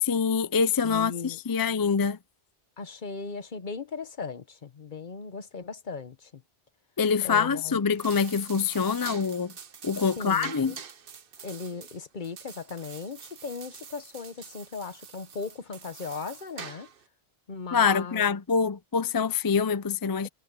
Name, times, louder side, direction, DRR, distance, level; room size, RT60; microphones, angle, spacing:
voice 1, 0.1-2.2 7.0-9.5 9.8-10.7 17.7-20.3, left 6 dB, 30° left, 0.4 m, -25 dB
voice 2, 0.8-1.4 2.8-6.4 7.2-7.8 10.2-10.8 11.4-16.9 17.5-18.3, left 5 dB, 50° left, 1.1 m, -38 dB
sound 1, 7.8-17.1, right 7 dB, 60° right, 1.1 m, -45 dB
omnidirectional pair, 1.1 m